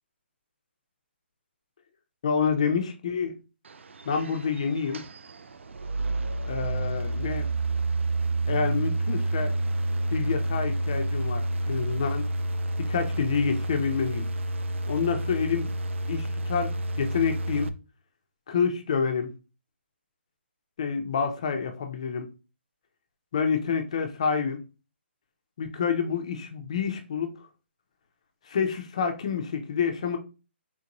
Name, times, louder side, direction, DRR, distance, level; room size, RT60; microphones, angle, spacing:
voice 1, 2.2-3.3 4.1-5.0 6.5-7.5 8.5-9.5 10.1-12.3 12.8-14.3 14.9-15.7 16.1-16.7 17.0-17.7 18.5-19.3 20.8-22.3 23.3-24.6 25.6-27.3 28.5-30.2, left 6 dB, 30° left, 0.4 m, -28 dB
sound 1, 3.6-17.7, right 2 dB, 80° right, 0.4 m, -29 dB
3.6 x 2.5 x 2.9 m
hypercardioid pair, 170°, 7 cm